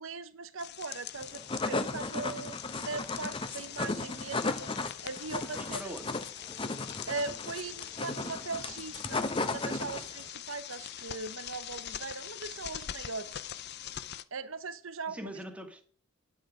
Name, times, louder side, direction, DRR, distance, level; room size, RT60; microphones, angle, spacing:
voice 1, 0.0-4.7 5.0-6.0 7.1-13.4 14.3-15.3, right 4 dB, 75° right, 12 dB, 1.0 m, -40 dB
sound 1, 0.6-14.2, left 11 dB, 55° left, 0.6 m, -43 dB
sound 2, 1.2-10.3, left 3 dB, 25° left, 0.9 m, -35 dB
voice 2, 5.5-6.2 15.1-15.8, equal, 5° right, 4 dB, 1.9 m, -42 dB
9.8 x 8.3 x 5.0 m, 0.42 s
head